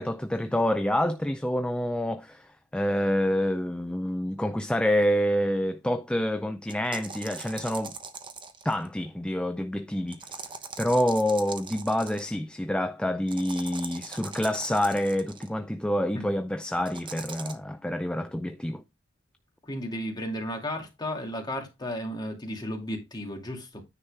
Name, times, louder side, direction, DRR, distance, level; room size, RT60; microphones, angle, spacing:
voice 1, 0.0-8.0 8.6-10.2 10.8-18.8, left 1 dB, 5° left, 0.5 m, -27 dB
sound 1, 6.7-8.9 10.1-12.3 13.3-15.5 16.9-17.5, right 5 dB, 25° right, 1.0 m, -41 dB
voice 2, 19.6-23.8, equal, 20° left, 2.5 m, -34 dB
9.8 x 4.3 x 4.9 m
head